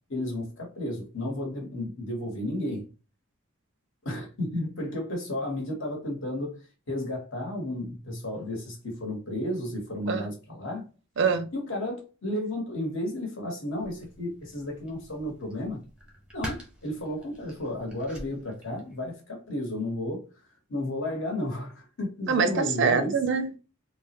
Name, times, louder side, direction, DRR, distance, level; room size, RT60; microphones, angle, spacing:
voice 1, 0.1-2.9 4.0-6.6 6.9-10.8 11.5-15.8 16.3-20.2 20.7-23.2, left 1 dB, 60° left, 1.1 m, -33 dB
voice 2, 11.2-11.5 22.3-23.6, right 5 dB, 55° right, 0.4 m, -24 dB
sound 1, 13.7-19.1, equal, 5° right, 0.6 m, -45 dB
3.2 x 2.1 x 2.9 m
head